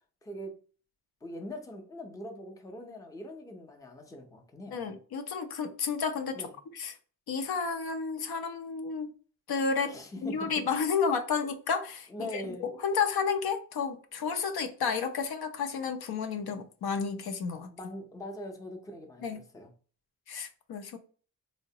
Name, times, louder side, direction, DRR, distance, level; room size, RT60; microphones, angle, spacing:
voice 1, 0.2-0.6 1.2-4.8 6.3-6.5 9.8-10.5 12.1-12.7 17.7-19.7, left 1 dB, 10° left, 0.4 m, -42 dB
voice 2, 4.7-6.5 6.7-6.9 7.3-9.1 9.5-9.9 10.2-17.7 19.2-19.4 20.3-21.0, left 5 dB, 85° left, 0.6 m, -31 dB
3.8 x 2.1 x 2.7 m
wide cardioid pair, 160°, 37 cm